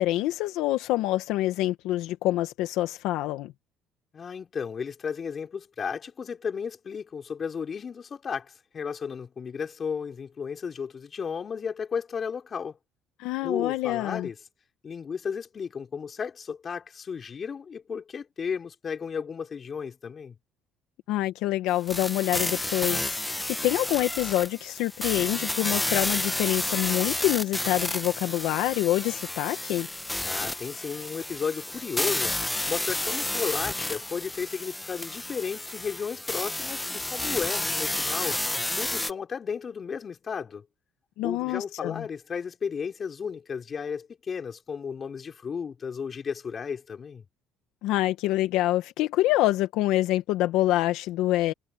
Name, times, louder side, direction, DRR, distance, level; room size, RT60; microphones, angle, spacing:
voice 1, 0.0-3.5 13.2-14.3 21.1-29.9 41.2-42.0 47.8-51.5, left 15 dB, 80° left, 1.3 m, -26 dB
voice 2, 4.1-12.8 13.4-14.4 14.8-20.4 30.2-32.3 32.7-38.4 38.7-40.6 41.2-47.2, left 6 dB, 35° left, 4.5 m, -34 dB
sound 1, 21.9-39.1, left 2 dB, 10° left, 1.1 m, -31 dB
cardioid pair, 105°, 0 cm